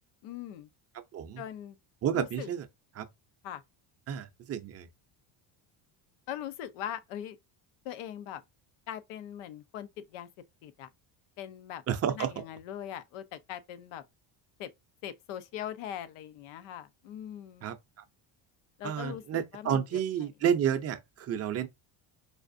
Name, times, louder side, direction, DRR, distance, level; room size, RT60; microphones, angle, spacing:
voice 1, 0.2-0.7 1.4-1.8 2.1-2.5 3.4-3.6 6.3-7.4 7.8-8.4 8.9-10.3 10.6-10.9 11.4-11.8 12.1-14.0 14.6-14.7 15.0-17.7 18.8-20.3, left 10 dB, 80° left, 0.8 m, -41 dB
voice 2, 1.1-1.4 2.0-2.6 3.0-3.1 4.1-4.9 11.9-12.3 17.6-17.8 18.8-21.7, right 9 dB, 30° right, 0.5 m, -30 dB
4.8 x 2.4 x 2.5 m
cardioid pair, 155°, 49 cm